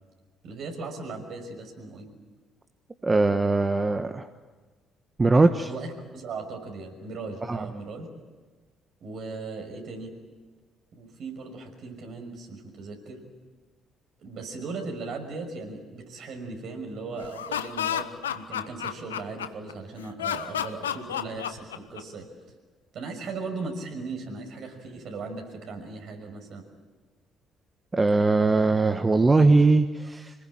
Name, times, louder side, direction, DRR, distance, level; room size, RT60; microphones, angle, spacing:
voice 1, 0.4-2.1 5.7-8.1 9.0-10.1 10.9-13.2 14.2-18.1 18.3-22.3 22.9-26.7, right 3 dB, 60° right, 3 dB, 6.0 m, -38 dB
voice 2, 3.0-4.3 5.2-5.7 7.5-7.7 27.9-30.3, right 3 dB, 25° right, 8 dB, 1.3 m, -21 dB
Laughter, 17.2-19.7 20.2-22.2, left 9 dB, 85° left, 0.7 m, -31 dB
26.0 x 20.0 x 8.9 m, 1.3 s
hypercardioid pair, 45°, 0 cm